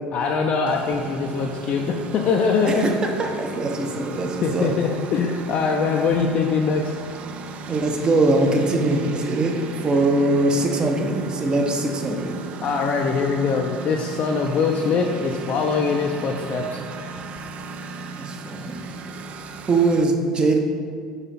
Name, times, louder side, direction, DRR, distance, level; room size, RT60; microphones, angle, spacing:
voice 1, 0.1-2.9 4.4-6.9 12.6-16.8, left 5 dB, 50° left, 0 dB, 0.5 m, -22 dB
Engine, 0.7-20.0, right 4 dB, 45° right, 0.4 m, -36 dB
voice 2, 2.7-4.7 7.7-12.4 18.2-18.9 19.7-20.6, right 2 dB, 30° right, 3 dB, 0.9 m, -22 dB
5.5 x 4.8 x 4.2 m, 2.2 s
hypercardioid pair, 70°, 3 cm